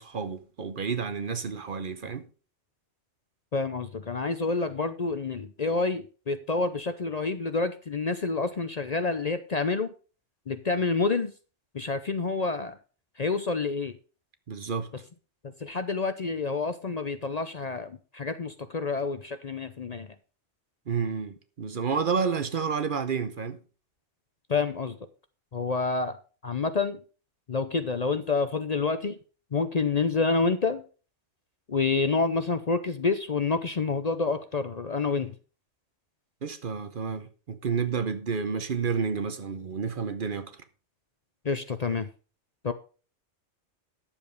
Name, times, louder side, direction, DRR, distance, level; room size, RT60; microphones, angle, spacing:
voice 1, 0.0-2.2 14.5-14.9 20.9-23.6 36.4-40.5, right 5 dB, 50° right, 0.9 m, -30 dB
voice 2, 3.5-9.9 10.5-11.3 11.7-12.8 13.2-13.9 15.6-20.1 24.5-25.0 25.5-26.2 26.4-27.0 27.5-29.2 29.5-30.8 31.7-35.3 41.4-42.1 42.6-42.7, left 4 dB, 40° left, 0.7 m, -28 dB
10.5 x 7.2 x 5.1 m
omnidirectional pair, 1.2 m